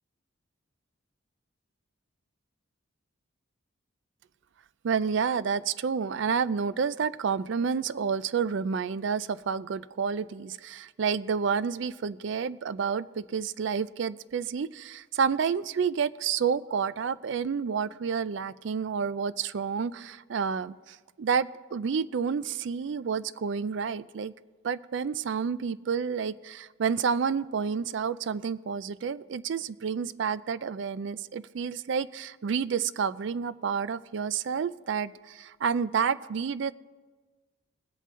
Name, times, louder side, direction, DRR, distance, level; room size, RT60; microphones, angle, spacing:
voice 1, 4.8-24.3 24.6-36.7, right 6 dB, 60° right, 17 dB, 0.3 m, -29 dB
20.5 x 8.3 x 3.7 m, 1.3 s
head